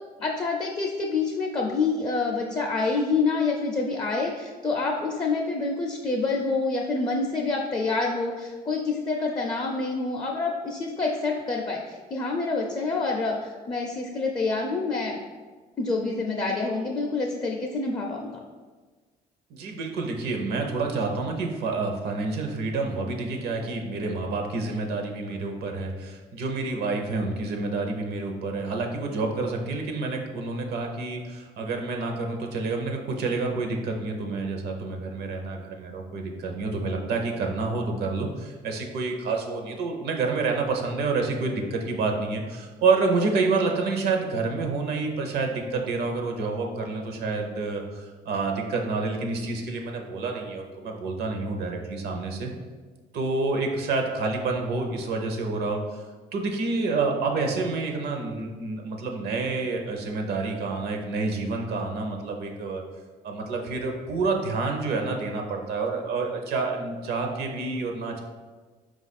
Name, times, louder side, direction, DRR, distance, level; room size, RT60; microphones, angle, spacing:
voice 1, 0.2-15.2 15.8-18.3, left 3 dB, 25° left, 0 dB, 0.4 m, -27 dB
voice 2, 19.5-52.5 53.1-56.0 56.3-62.8 63.2-68.2, right 3 dB, 75° right, 3 dB, 0.7 m, -28 dB
4.6 x 2.4 x 4.1 m, 1.4 s
cardioid pair, 110°, 17 cm